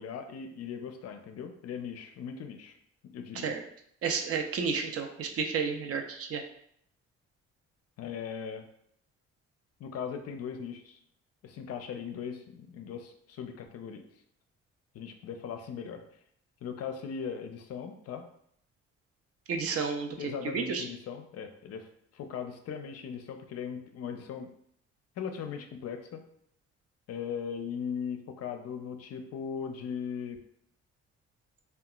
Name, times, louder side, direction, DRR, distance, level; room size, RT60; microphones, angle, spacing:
voice 1, 0.0-2.8 3.0-3.5 8.0-8.6 9.8-11.0 11.4-14.0 14.9-16.0 16.6-18.3 20.2-24.5 25.2-26.2 27.1-30.4, left 7 dB, 55° left, 6 dB, 0.4 m, -39 dB
voice 2, 4.0-6.4 19.5-20.8, right 5 dB, 55° right, 5 dB, 0.5 m, -31 dB
2.8 x 2.2 x 2.3 m, 0.69 s
supercardioid pair, 60°, 29 cm